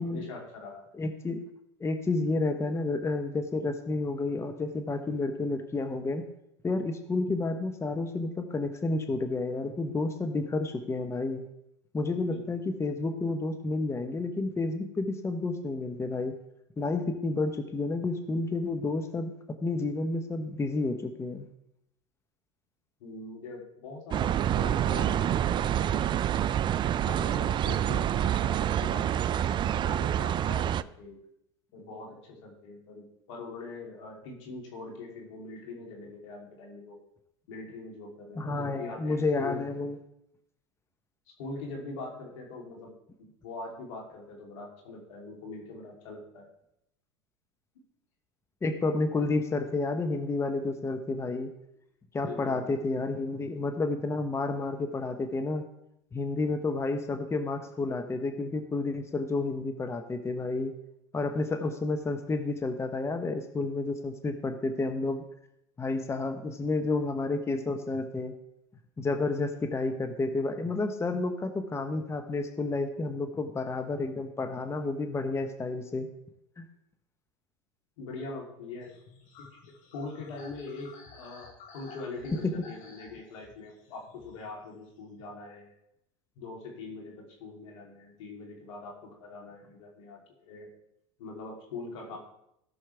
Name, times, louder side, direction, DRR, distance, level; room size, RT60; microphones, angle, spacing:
voice 1, 0.0-0.8 12.2-12.4 23.0-26.5 27.0-31.2 31.7-37.0 37.5-39.6 41.4-42.9 43.2-46.4 52.2-52.7 78.0-78.9 79.4-79.5 79.9-85.7 86.4-90.7 91.2-92.2, left 3 dB, 80° left, -1 dB, 3.2 m, -42 dB
voice 2, 0.9-1.4 1.8-6.2 6.6-11.4 11.9-16.4 16.8-19.3 19.6-21.5 38.4-40.0 48.6-51.5 52.1-55.6 56.1-60.7 61.1-65.2 65.8-68.3 69.0-76.1 76.6-76.7, left 3 dB, 15° left, 7 dB, 1.0 m, -30 dB
sound 1, 24.1-30.8, right 10 dB, 30° right, 0.4 m, -27 dB
sound 2, 78.8-85.3, left 4 dB, 55° left, 2.7 m, -53 dB
17.5 x 6.4 x 3.4 m, 0.80 s
hypercardioid pair, 100°, 16 cm